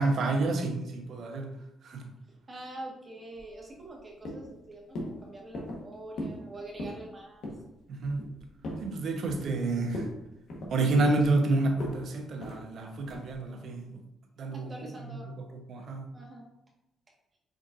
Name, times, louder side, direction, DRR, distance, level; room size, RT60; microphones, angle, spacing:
voice 1, 0.0-1.5 1.8-2.0 7.9-8.2 8.8-10.1 10.7-13.8 14.4-14.7 15.7-16.1, right 2 dB, 65° right, 3 dB, 0.9 m, -28 dB
voice 2, 2.5-7.5 14.5-15.5 16.1-16.4, right 1 dB, 30° right, -1 dB, 1.4 m, -45 dB
sound 1, 3.3-4.0 4.2-4.6 5.0-5.2 5.5-5.8 6.2-6.4 6.7-7.0 7.4-7.7 8.0-8.9 9.3-9.6 9.9-10.2 10.5-11.4 11.8-12.0 12.4-12.6 13.1-13.3, left 1 dB, 70° left, 1.1 m, -38 dB
5.1 x 3.8 x 2.5 m, 0.85 s
cardioid pair, 90°, 0 cm